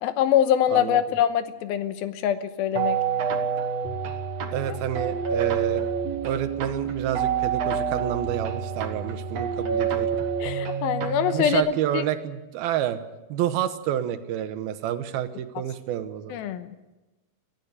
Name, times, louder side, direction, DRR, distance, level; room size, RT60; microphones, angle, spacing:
voice 1, 0.0-3.0 4.7-4.8 10.4-12.0 16.3-16.8, left 10 dB, 80° left, 10 dB, 2.8 m, -24 dB
voice 2, 0.7-1.0 4.5-5.8 6.2-10.2 11.3-13.0 13.3-16.4, right 11 dB, 80° right, 10 dB, 2.9 m, -29 dB
sound 1, 2.8-11.6, right 7 dB, 50° right, 2.4 m, -28 dB
22.5 x 15.0 x 8.2 m, 1.1 s
omnidirectional pair, 4.3 m